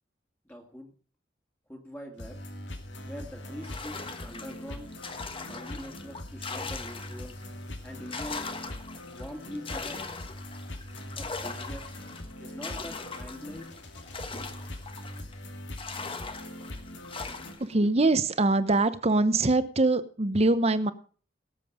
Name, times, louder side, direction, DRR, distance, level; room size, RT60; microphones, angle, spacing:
voice 1, 0.4-0.9 1.7-2.4 3.1-4.9 5.4-7.4 7.8-8.5 9.1-10.0 11.2-11.9 12.4-13.7, equal, 10° left, 0 dB, 2.0 m, -43 dB
sound 1, 2.2-17.5, left 1 dB, 85° left, 2.3 m, -42 dB
sound 2, 3.6-7.5 7.9-15.4 15.8-17.7, left 4 dB, 30° left, 1.3 m, -40 dB
voice 2, 17.6-20.9, right 2 dB, 35° right, 13 dB, 0.9 m, -23 dB
18.5 x 7.6 x 5.0 m, 0.41 s
head